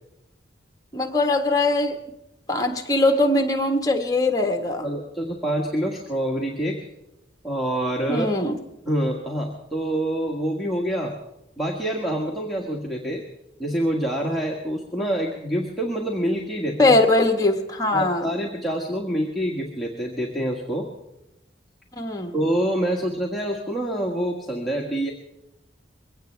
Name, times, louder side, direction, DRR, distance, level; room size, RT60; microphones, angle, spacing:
voice 1, 0.9-2.0 2.5-4.9 8.1-8.6 16.8-18.3 22.0-22.3, left 2 dB, 20° left, 5 dB, 1.5 m, -21 dB
voice 2, 4.8-6.8 7.4-8.3 8.9-11.2 11.6-13.2 13.6-17.0 17.9-20.9 22.3-25.1, right 1 dB, ahead, -4 dB, 1.7 m, -26 dB
23.0 x 17.0 x 3.4 m, 0.90 s
head